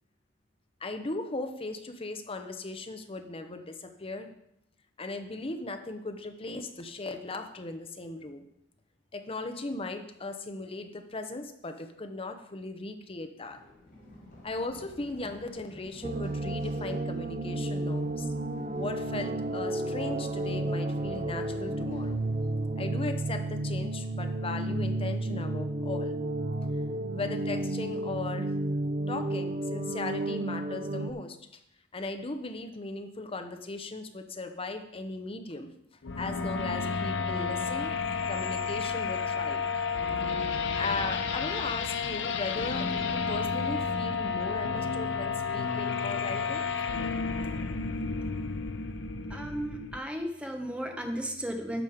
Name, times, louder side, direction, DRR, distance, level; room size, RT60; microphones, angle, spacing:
voice 1, 0.8-4.3 5.0-8.5 9.1-13.6 14.4-18.3 18.8-22.2 22.8-26.1 27.1-28.5 29.1-31.4 31.9-35.7 36.2-37.9 38.3-39.6 40.7-46.6, left 2 dB, 30° left, 7 dB, 0.9 m, -37 dB
Run, 13.5-23.2, left 1 dB, 50° left, 3.8 m, -52 dB
sound 1, 16.0-31.1, right 2 dB, 35° right, 0.5 m, -32 dB
sound 2, 36.0-50.0, left 5 dB, 70° left, 0.7 m, -31 dB
voice 2, 49.3-51.8, equal, 5° right, 3 dB, 1.2 m, -34 dB
11.0 x 6.2 x 5.0 m, 0.77 s
head